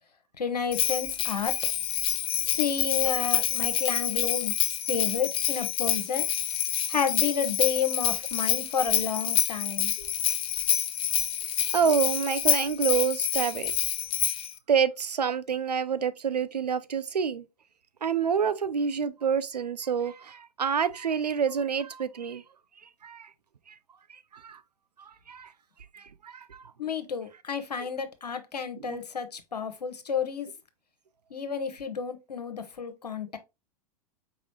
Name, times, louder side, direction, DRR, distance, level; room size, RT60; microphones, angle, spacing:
voice 1, 0.4-1.6 2.5-4.5 4.9-6.3 6.9-9.9 26.8-30.5 31.3-33.4, left 6 dB, 80° left, 0.7 m, -31 dB
Bell, 0.7-14.5, left 11 dB, 25° left, 0.5 m, -27 dB
voice 2, 11.7-13.7 14.7-17.5 18.0-22.4 22.8-23.3 23.7-23.8 24.1-24.6 25.0-25.5 25.9-26.9 27.8-27.9 28.8-29.0, right 7 dB, 85° right, 0.4 m, -28 dB
4.7 x 3.0 x 2.9 m
figure-of-eight pair, 95°, 20 cm